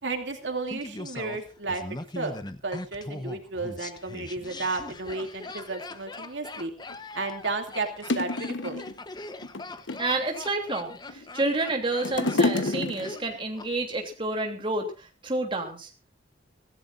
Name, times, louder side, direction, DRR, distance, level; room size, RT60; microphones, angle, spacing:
voice 1, 0.0-1.8 2.1-2.3 2.6-6.7 7.1-8.9, right 3 dB, 75° right, 4 dB, 2.6 m, -33 dB
Laughter, 0.7-13.7 13.9-14.0, left 2 dB, 25° left, 0.9 m, -40 dB
sound 1, 6.9-7.0 7.7-7.8 8.1-8.9 9.4-10.2 10.9-11.5 11.7-13.4 14.1-14.2, left 2 dB, 90° left, 1.2 m, -28 dB
voice 2, 10.0-15.9, right 2 dB, 30° right, 2 dB, 3.1 m, -29 dB
24.5 x 15.5 x 2.6 m, 0.32 s
head